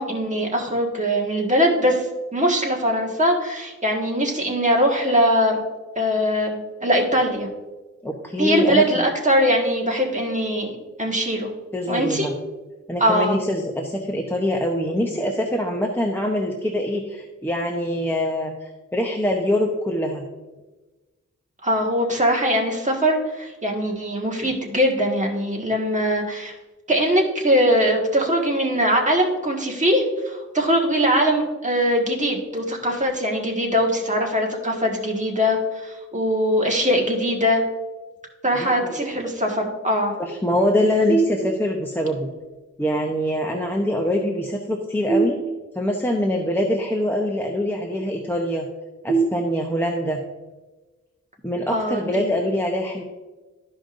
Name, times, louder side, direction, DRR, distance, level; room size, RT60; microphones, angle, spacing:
voice 1, 0.0-2.1 2.3-5.6 5.9-7.5 8.4-10.7 11.0-11.5 11.9-12.3 13.0-13.4 21.6-26.5 26.9-37.6 38.4-40.2 51.7-52.3, equal, 25° right, 0 dB, 1.6 m, -21 dB
voice 2, 8.0-9.1 11.7-12.3 12.9-20.2 38.5-39.1 40.2-42.3 42.8-45.4 45.7-48.6 49.0-50.2 51.4-53.0, left 1 dB, 5° left, 0 dB, 0.8 m, -24 dB
sound 1, 41.1-42.0 45.1-46.1 49.1-50.1, right 4 dB, 80° right, 1.5 m, -25 dB
13.0 x 5.2 x 2.6 m, 1.2 s
wide cardioid pair, 90°, 29 cm